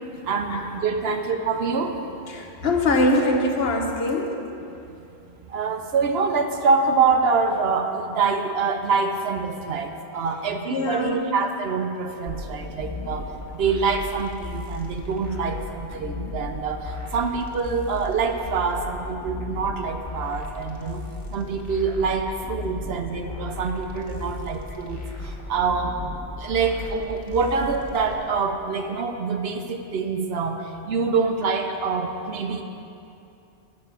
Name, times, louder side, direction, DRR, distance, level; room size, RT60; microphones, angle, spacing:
voice 1, 0.2-2.0 2.6-2.7 5.5-13.2 13.5-21.0 21.3-26.0 26.4-32.6, right 5 dB, 65° right, 6 dB, 0.8 m, -25 dB
voice 2, 2.3-4.4 10.7-11.3 24.7-24.8 30.2-30.3, left 2 dB, 60° left, 2 dB, 1.1 m, -23 dB
sound 1, 12.3-28.1, left 3 dB, 15° left, 1.4 m, -36 dB
9.4 x 5.3 x 8.1 m, 2.7 s
omnidirectional pair, 1.2 m